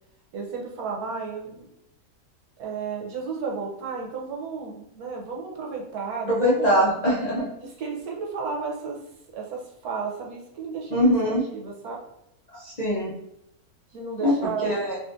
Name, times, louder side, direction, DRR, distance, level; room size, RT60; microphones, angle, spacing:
voice 1, 0.3-1.7 2.6-6.8 7.6-9.0 9.3-12.0 13.9-14.8, right 5 dB, 90° right, -1 dB, 1.3 m, -33 dB
voice 2, 6.3-7.5 10.9-11.4 12.6-13.1 14.2-14.4 14.6-15.0, equal, 40° left, -7 dB, 0.6 m, -22 dB
4.0 x 2.5 x 2.5 m, 0.81 s
omnidirectional pair, 1.6 m